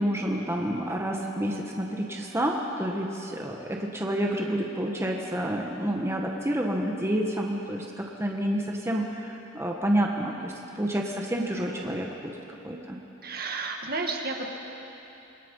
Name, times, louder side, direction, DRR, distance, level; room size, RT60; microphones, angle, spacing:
voice 1, 0.0-12.1 12.6-13.0, right 1 dB, 15° right, 0 dB, 1.5 m, -29 dB
voice 2, 13.2-14.6, right 3 dB, 50° right, 2 dB, 1.9 m, -32 dB
26.5 x 22.5 x 5.6 m, 2.9 s
head